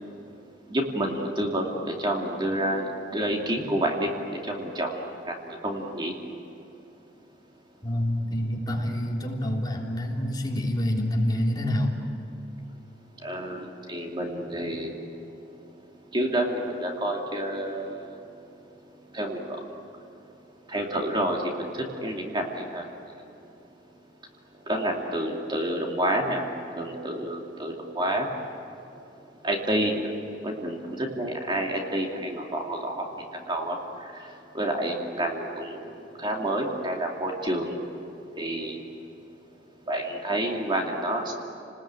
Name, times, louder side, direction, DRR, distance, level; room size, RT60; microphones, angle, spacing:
voice 1, 0.7-6.1 13.2-14.9 16.1-18.2 19.1-19.6 20.7-22.9 24.7-26.5 26.8-28.3 29.4-29.9 30.4-33.1 33.5-35.9 36.2-37.7 38.4-38.8 39.9-41.3, right 1 dB, 25° right, 0 dB, 2.6 m, -29 dB
voice 2, 7.8-12.0, left 1 dB, 25° left, -1 dB, 3.4 m, -27 dB
30.0 x 20.5 x 9.0 m, 2.8 s
head